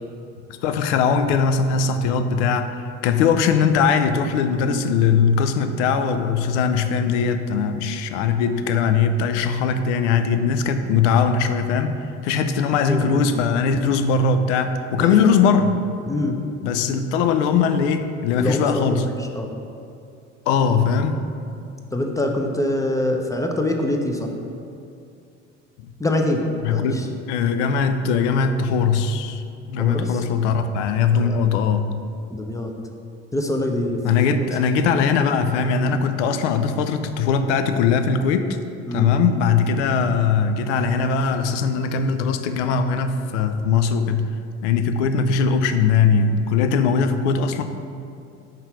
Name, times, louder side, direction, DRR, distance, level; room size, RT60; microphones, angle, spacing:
voice 1, 0.6-11.9 12.2-15.8 16.6-19.1 20.5-21.2 26.6-27.0 27.3-32.0 34.0-38.6 38.9-44.3 44.6-47.6, left 5 dB, 70° left, 9 dB, 0.5 m, -20 dB
voice 2, 12.8-13.2 15.1-15.2 16.1-16.4 18.4-19.5 21.9-24.3 26.0-26.4 26.7-27.1 29.8-30.2 31.1-31.4 32.3-32.7 33.3-34.0 34.4-34.5 38.9-39.1, left 1 dB, 10° left, 2 dB, 0.7 m, -24 dB
5.5 x 3.7 x 5.7 m, 2.5 s
hypercardioid pair, 60°, 37 cm